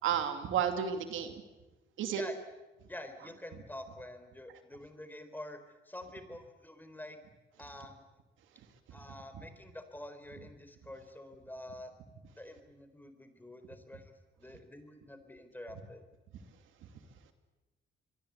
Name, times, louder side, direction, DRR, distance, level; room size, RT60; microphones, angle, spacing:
voice 1, 0.0-1.4 2.0-2.2, right 9 dB, 85° right, 7 dB, 2.7 m, -32 dB
voice 2, 2.9-7.2 7.6-8.1 8.9-12.0 12.4-16.0, left 1 dB, 10° left, 8 dB, 4.2 m, -47 dB
26.0 x 22.5 x 8.3 m, 1.1 s
cardioid pair, 90°, 20 cm